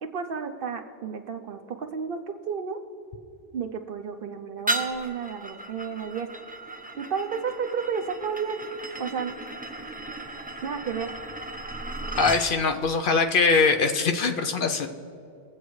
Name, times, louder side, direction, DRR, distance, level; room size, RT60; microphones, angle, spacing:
voice 1, 0.0-2.8 3.5-6.3 7.0-8.6 9.0-9.3 10.6-11.1, right 6 dB, 60° right, 7 dB, 0.8 m, -32 dB
sound 1, 4.7-12.5, right 2 dB, 10° right, 0.6 m, -35 dB
voice 2, 12.2-14.9, left 4 dB, 60° left, 6 dB, 0.7 m, -22 dB
21.0 x 8.1 x 3.1 m, 2.6 s
omnidirectional pair, 1.1 m